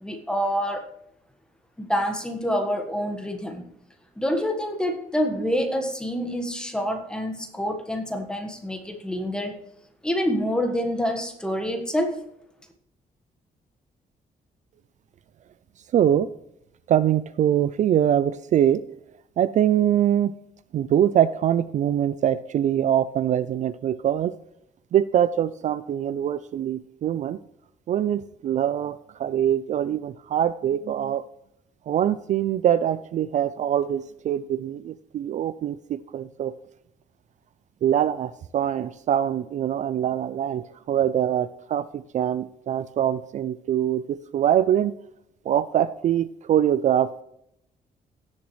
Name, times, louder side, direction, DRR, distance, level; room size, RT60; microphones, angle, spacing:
voice 1, 0.0-0.9 1.8-3.6 4.2-9.6 10.0-12.2, equal, 5° left, 5 dB, 1.5 m, -27 dB
voice 2, 15.9-16.3 16.9-18.8 19.4-20.3 20.7-24.3 24.9-27.4 27.9-31.2 31.9-36.5 37.8-44.9 45.5-47.2, right 10 dB, 50° right, 14 dB, 0.4 m, -23 dB
16.5 x 7.2 x 3.2 m, 0.76 s
wide cardioid pair, 170°, 15 cm